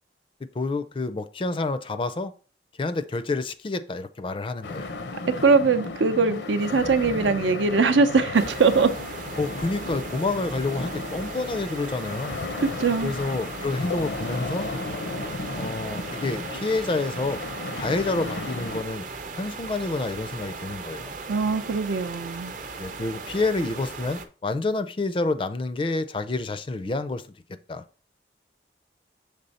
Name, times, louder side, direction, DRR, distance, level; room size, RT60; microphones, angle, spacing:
voice 1, 0.5-2.3 2.8-4.9 9.4-12.3 13.0-14.7 15.6-17.4 17.8-19.1 19.3-21.2 22.8-27.2 27.7-27.8, left 3 dB, 30° left, 0.4 m, -28 dB
sound 1, 4.6-18.8, left 3 dB, 75° left, 0.6 m, -34 dB
voice 2, 5.4-8.9 12.8-13.1 21.3-22.5, right 4 dB, 85° right, 0.6 m, -21 dB
sound 2, 8.3-24.2, right 4 dB, 45° right, 0.6 m, -38 dB
6.7 x 3.4 x 4.1 m
head